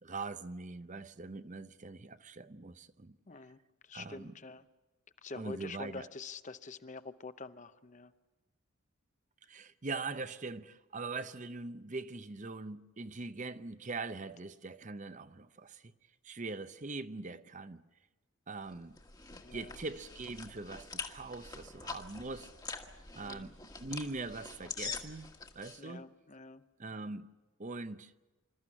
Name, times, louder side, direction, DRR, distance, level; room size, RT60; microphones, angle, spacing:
voice 1, 0.0-3.2 3.9-4.3 5.4-6.1 9.5-15.9 16.2-17.8 18.5-19.0 19.5-22.5 23.1-26.0 26.8-27.3 27.6-28.1, right 3 dB, 35° right, 0.7 m, -42 dB
voice 2, 3.3-4.7 5.2-8.1 19.3-19.8 23.2-23.5 25.8-26.7, left 4 dB, 35° left, 0.7 m, -47 dB
sound 1, 18.7-25.8, left 4 dB, 20° left, 1.5 m, -45 dB
27.0 x 14.0 x 9.9 m
head